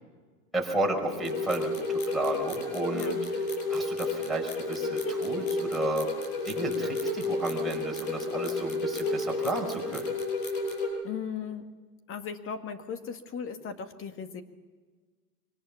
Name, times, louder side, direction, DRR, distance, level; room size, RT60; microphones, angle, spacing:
voice 1, 0.5-3.2 3.7-6.1 6.4-10.1, right 2 dB, ahead, -2 dB, 5.1 m, -32 dB
sound 1, 1.1-10.9, left 3 dB, 55° left, 7.0 m, -31 dB
voice 2, 2.9-3.2 10.5-11.7 12.1-14.4, left 7 dB, 30° left, 8 dB, 1.9 m, -38 dB
24.5 x 19.0 x 7.1 m, 1.4 s
hypercardioid pair, 110°, 46 cm